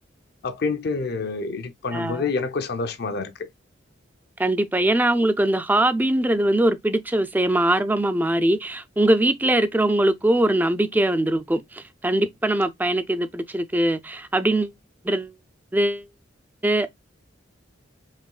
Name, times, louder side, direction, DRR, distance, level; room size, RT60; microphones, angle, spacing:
voice 1, 0.4-3.5, left 4 dB, 55° left, 0.5 m, -27 dB
voice 2, 1.9-2.2 4.4-14.7 15.0-15.3 15.7-16.0 16.6-16.9, right 1 dB, 10° right, 0.3 m, -22 dB
4.8 x 3.1 x 2.3 m
head